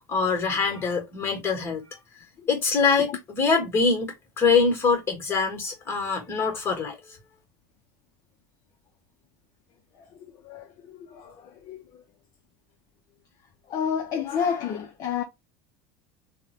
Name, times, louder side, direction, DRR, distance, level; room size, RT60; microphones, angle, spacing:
voice 1, 0.1-1.8 2.5-7.0, left 5 dB, 25° left, 1.4 m, -24 dB
voice 2, 10.4-12.0 13.7-15.2, left 7 dB, 40° left, 0.6 m, -30 dB
3.5 x 2.2 x 2.9 m
supercardioid pair, 125°, 10 cm